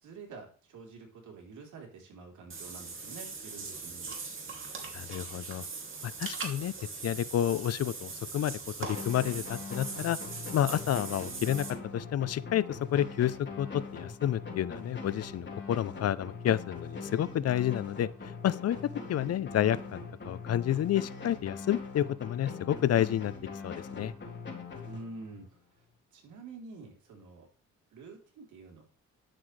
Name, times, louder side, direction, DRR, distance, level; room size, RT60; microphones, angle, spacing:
voice 1, 0.0-4.1 24.8-25.5 26.1-27.5 27.9-28.8, right 3 dB, 75° right, 1 dB, 3.7 m, -47 dB
Water / Bathtub (filling or washing), 2.5-11.7, right 4 dB, 40° right, 2.8 m, -41 dB
voice 2, 4.9-5.6 6.0-6.7 7.0-10.2 10.5-11.7 11.9-13.7 13.9-18.8 19.1-23.3 23.6-24.1, left 11 dB, 55° left, 18 dB, 0.6 m, -30 dB
sound 1, 8.9-25.5, left 4 dB, 35° left, 3.5 m, -42 dB
11.0 x 7.6 x 3.3 m, 0.41 s
cardioid pair, 90°, 30 cm